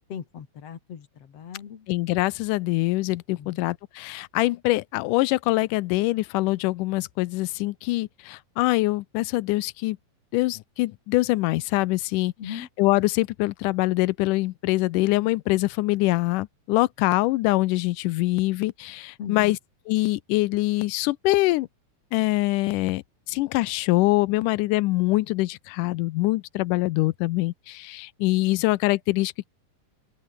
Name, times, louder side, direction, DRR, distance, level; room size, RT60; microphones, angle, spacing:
voice 1, 0.1-1.9 3.3-3.6 12.4-12.7 19.2-19.6, left 8 dB, 50° left, 2.8 m, -38 dB
voice 2, 1.9-10.0 10.3-12.3 12.8-19.6 19.9-21.7 22.1-23.0 23.3-29.5, left 19 dB, 80° left, 2.1 m, -24 dB
open air
omnidirectional pair, 3.9 m